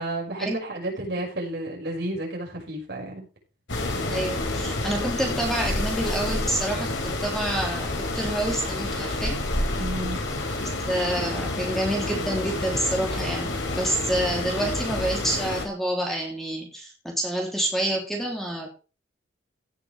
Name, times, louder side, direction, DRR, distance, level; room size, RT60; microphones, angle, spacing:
voice 1, 0.0-3.3 9.8-10.2, right 1 dB, 60° right, -1 dB, 6.1 m, -31 dB
sound 1, 3.7-15.7, left 2 dB, 85° left, 3.6 m, -29 dB
voice 2, 4.1-9.4 10.9-18.7, right 1 dB, ahead, -1 dB, 3.2 m, -28 dB
17.0 x 7.0 x 3.4 m, 0.33 s
head